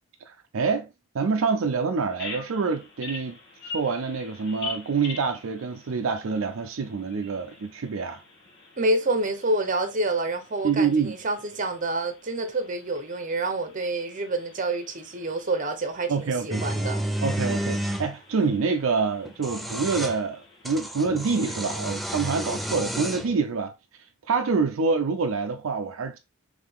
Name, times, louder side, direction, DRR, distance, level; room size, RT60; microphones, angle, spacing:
voice 1, 0.3-0.9 1.1-3.4 3.7-8.2 10.6-11.1 16.1-16.6 17.2-23.7 24.3-26.2, right 5 dB, 70° right, 0.5 m, -26 dB
Bird vocalization bird call bird song, 2.1-21.9, left 4 dB, 60° left, 1.4 m, -45 dB
voice 2, 8.8-17.0, right 2 dB, 40° right, 0.8 m, -28 dB
sound 1, 16.5-18.1 19.2-20.2 20.6-23.3, equal, ahead, 0.4 m, -30 dB
3.7 x 3.2 x 3.5 m
head